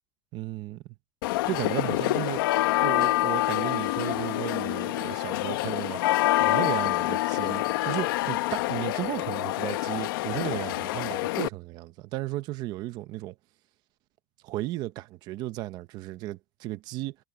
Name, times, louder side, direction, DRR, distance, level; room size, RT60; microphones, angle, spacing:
voice 1, 0.3-0.8 1.5-2.4 2.8-6.0 6.4-13.3 14.4-17.2, right 16 dB, 35° right, 0.9 m, -34 dB
sound 1, 1.2-11.5, left 18 dB, 75° left, 1.0 m, -27 dB
supercardioid pair, 175°, 12 cm